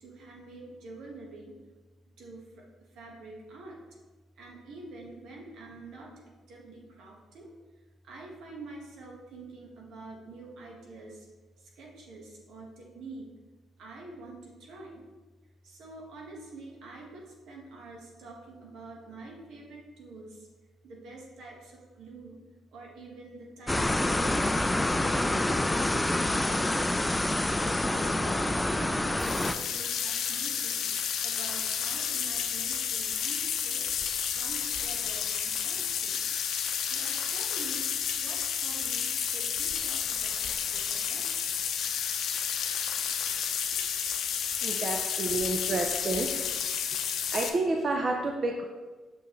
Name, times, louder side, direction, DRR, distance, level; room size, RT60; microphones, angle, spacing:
voice 1, 0.0-1.5 2.2-2.6 2.9-3.8 4.4-6.1 6.5-7.5 8.0-11.3 11.8-13.3 13.8-15.0 15.6-20.5 20.8-22.4 22.7-27.1 27.7-30.9 31.2-33.9 34.3-36.2 36.9-37.9 38.1-41.3 45.0-46.1, right 2 dB, 75° right, -1 dB, 1.5 m, -46 dB
sound 1, 23.7-29.5, left 1 dB, 10° left, 0.4 m, -27 dB
sound 2, 29.2-47.5, left 8 dB, 75° left, 0.6 m, -31 dB
voice 2, 44.6-46.4 47.3-48.6, right 2 dB, 45° right, 2 dB, 0.6 m, -29 dB
6.2 x 5.7 x 3.2 m, 1.3 s
cardioid pair, 90°, 0 cm